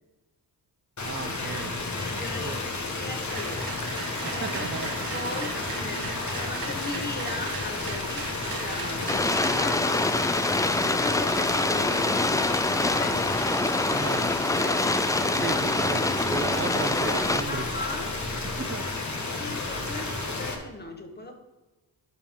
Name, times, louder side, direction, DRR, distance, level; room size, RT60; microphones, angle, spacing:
sound 1, 1.0-20.5, left 3 dB, 45° left, 1.7 m, -32 dB
voice 1, 1.0-1.8 2.4-2.6 4.2-4.9 5.8-5.9 13.9-14.3 15.4-17.7 18.6-18.9, right 4 dB, 30° right, 7 dB, 0.6 m, -34 dB
voice 2, 2.0-3.7 4.3-4.7 5.1-10.4 10.9-13.3 13.6-14.1 14.5-14.9 15.4-15.7 16.1-16.4 17.5-18.1 19.3-21.3, left 2 dB, 25° left, 4 dB, 1.6 m, -38 dB
sound 2, 3.3-11.3, right 5 dB, 60° right, 1.1 m, -39 dB
sound 3, 9.1-17.4, left 2 dB, 10° left, 0.3 m, -25 dB
10.5 x 5.5 x 3.8 m, 1.1 s
cardioid pair, 90°, 40 cm